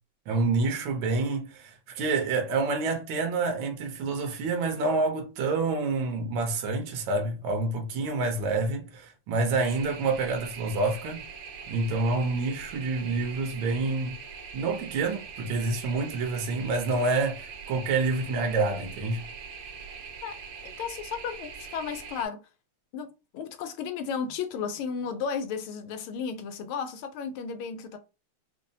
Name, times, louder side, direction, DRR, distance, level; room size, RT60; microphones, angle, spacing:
voice 1, 0.3-11.2 11.7-14.1 14.5-19.2, right 3 dB, 70° right, 1.5 m, -28 dB
sound 1, 9.6-22.3, right 6 dB, 85° right, 1.6 m, -42 dB
voice 2, 20.2-22.4 22.9-28.0, left 6 dB, 80° left, 1.5 m, -34 dB
5.3 x 2.1 x 2.7 m
omnidirectional pair, 2.3 m